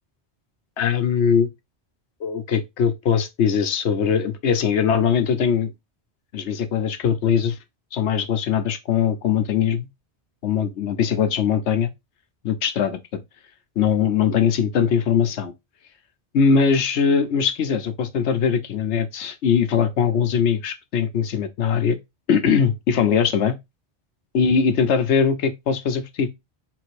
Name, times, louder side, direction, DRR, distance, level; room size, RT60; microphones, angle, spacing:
voice 1, 0.8-1.5 2.2-5.7 6.3-7.6 7.9-9.9 10.4-11.9 12.4-13.0 13.8-15.5 16.3-22.0 22.3-23.6 24.3-26.3, left 7 dB, 85° left, 1.1 m, -21 dB
4.7 x 4.0 x 2.5 m
omnidirectional pair, 1.1 m